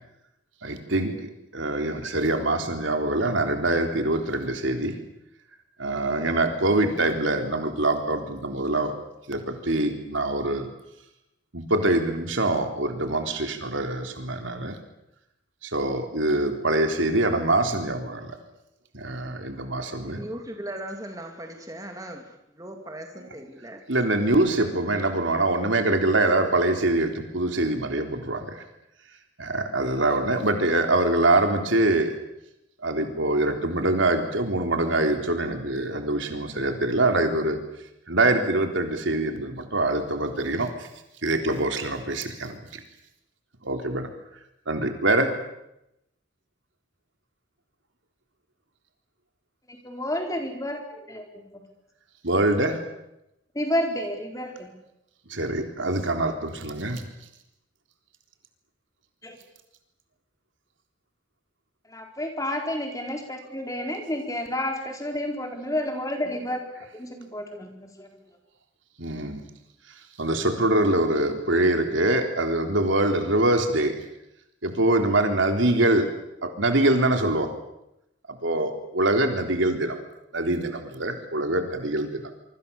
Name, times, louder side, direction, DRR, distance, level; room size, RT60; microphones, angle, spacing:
voice 1, 0.6-5.0 5.8-8.9 9.3-10.7 11.5-14.8 15.6-18.3 18.9-20.2 23.2-23.3 23.9-28.6 29.4-32.1 32.8-37.6 38.1-40.9 41.2-42.8 43.6-44.1 44.7-45.3 52.2-52.8 55.3-57.1 69.0-69.4 70.2-73.9 74.6-76.1 76.4-77.5 78.3-80.0 80.3-82.2, right 2 dB, 75° right, 5 dB, 3.8 m, -24 dB
voice 2, 20.0-23.8, right 1 dB, 15° right, 3 dB, 2.8 m, -38 dB
voice 3, 49.7-51.6 53.5-54.8 59.2-59.4 61.9-66.6 66.9-68.2, left 1 dB, 15° left, 3 dB, 4.2 m, -30 dB
26.5 x 24.5 x 7.1 m, 0.85 s
head